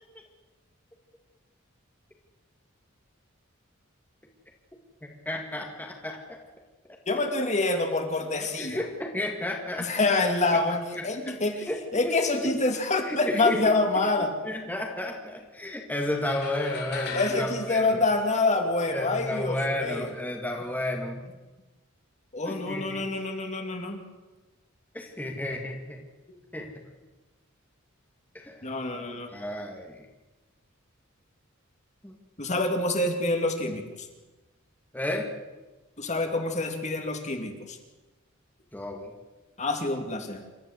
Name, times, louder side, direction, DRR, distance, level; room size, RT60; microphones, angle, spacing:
voice 1, 5.0-6.4 8.6-9.9 10.5-10.6 11.0-11.3 11.7-11.8 12.0-12.6 13.0-13.6 14.4-18.0 18.9-21.3 22.4-23.1 24.9-26.0 26.5-26.7 28.3-28.7 29.3-30.1 32.0-32.1 34.9-35.3 38.7-39.1, left 1 dB, 10° left, 1 dB, 2.2 m, -32 dB
voice 2, 7.1-8.8 9.8-14.3 17.1-20.1 22.3-24.0 28.6-29.3 32.4-34.1 36.0-37.8 39.6-40.4, left 2 dB, 35° left, 4 dB, 2.6 m, -27 dB
sound 1, 16.2-18.8, left 5 dB, 55° left, 4.2 m, -39 dB
27.5 x 13.0 x 8.1 m, 1.2 s
head